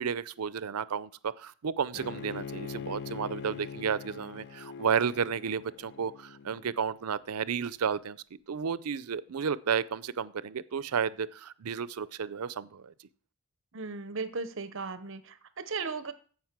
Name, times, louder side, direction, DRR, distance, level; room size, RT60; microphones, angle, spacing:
voice 1, 0.0-12.9, right 6 dB, 90° right, 0.5 m, -32 dB
Bowed string instrument, 1.9-7.0, left 6 dB, 50° left, 0.4 m, -43 dB
voice 2, 13.7-16.1, right 4 dB, 60° right, 0.9 m, -36 dB
15.5 x 5.3 x 6.0 m
head